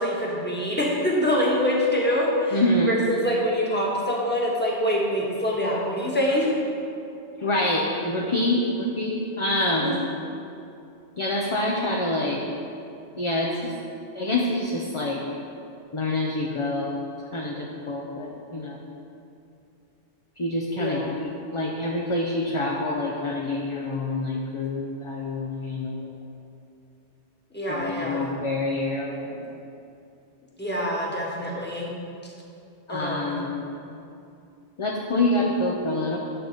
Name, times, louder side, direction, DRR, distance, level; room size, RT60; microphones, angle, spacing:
voice 1, 0.0-2.6 2.9-6.5 9.8-9.9 20.8-21.2 27.5-28.3 30.6-31.9 32.9-33.3, left 1 dB, 10° left, -4 dB, 1.4 m, -25 dB
voice 2, 2.5-3.0 7.4-10.0 11.2-12.4 13.2-13.7 14.1-15.2 15.9-17.0 17.3-18.9 20.4-26.1 27.7-29.6 32.9-33.7 34.8-36.2, left 1 dB, 35° left, -2 dB, 0.6 m, -26 dB
10.5 x 4.0 x 6.6 m, 2.6 s
omnidirectional pair, 1.1 m